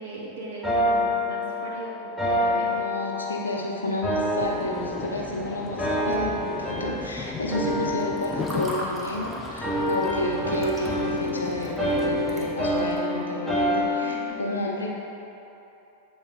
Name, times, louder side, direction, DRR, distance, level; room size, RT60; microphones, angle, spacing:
voice 1, 0.0-2.7 14.0-14.6, right 1 dB, 65° right, -4 dB, 1.3 m, -38 dB
sound 1, 0.6-3.6 4.0-5.4 5.8-7.2 7.5-9.2 9.6-14.3, equal, ahead, 1.3 m, -27 dB
voice 2, 2.5-14.9, left 1 dB, 75° left, -1 dB, 0.9 m, -31 dB
sound 2, 4.4-12.6, left 5 dB, 20° left, 0.3 m, -37 dB
Water / Fill (with liquid), 7.8-13.0, right 1 dB, 15° right, 1.0 m, -39 dB
8.0 x 4.0 x 4.0 m, 3.0 s
figure-of-eight pair, 90°, 0 cm